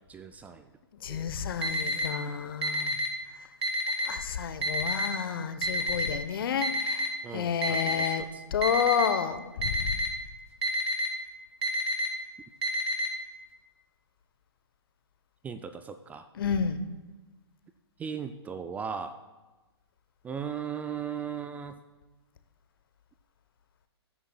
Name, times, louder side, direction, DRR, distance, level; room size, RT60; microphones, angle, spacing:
voice 1, 0.1-0.7 1.1-1.3 7.2-8.4 15.4-16.3 18.0-19.2 20.2-21.8, right 7 dB, 10° right, 9 dB, 0.3 m, -37 dB
voice 2, 1.0-3.0 4.0-8.2 8.5-9.9 16.3-16.8, left 7 dB, 55° left, 10 dB, 1.0 m, -30 dB
Alarm, 1.6-2.1 2.6-3.1 3.6-4.1 4.6-5.1 5.6-6.1 6.6-7.1 7.6-8.1 8.6-9.1 9.6-10.1 10.6-11.1 11.6-12.1 12.6-13.1, equal, 75° right, 2.5 m, -28 dB
20.5 x 10.0 x 2.3 m, 1.2 s
figure-of-eight pair, 125°, 14 cm